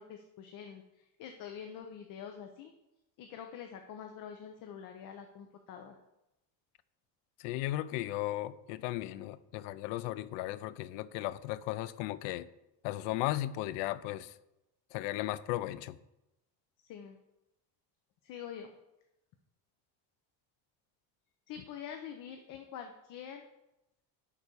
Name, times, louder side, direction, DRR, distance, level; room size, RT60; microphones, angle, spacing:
voice 1, 0.0-2.7 3.2-6.0 16.8-17.2 18.2-18.7 21.5-23.4, left 8 dB, 50° left, 0.8 m, -46 dB
voice 2, 7.4-12.5 12.8-14.3 14.9-16.0, left 15 dB, 80° left, 0.6 m, -36 dB
11.0 x 4.2 x 6.8 m
cardioid pair, 170°, 42 cm